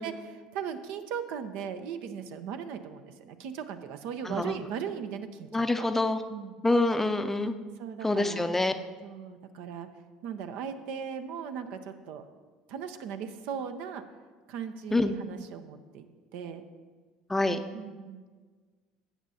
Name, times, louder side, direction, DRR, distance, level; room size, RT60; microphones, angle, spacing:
voice 1, 0.0-5.5 5.8-5.9 6.3-6.6 7.8-8.5 9.0-9.9 10.2-12.2 12.7-14.0 14.5-16.1 16.3-16.6 17.7-18.2, right 7 dB, 65° right, 8 dB, 0.6 m, -38 dB
voice 2, 4.2-4.6 5.5-6.2 6.6-7.6 8.0-8.7 14.9-15.1 17.3-17.6, left 2 dB, 10° left, 8 dB, 0.6 m, -26 dB
13.0 x 7.8 x 2.8 m, 1.4 s
hypercardioid pair, 75°, 3 cm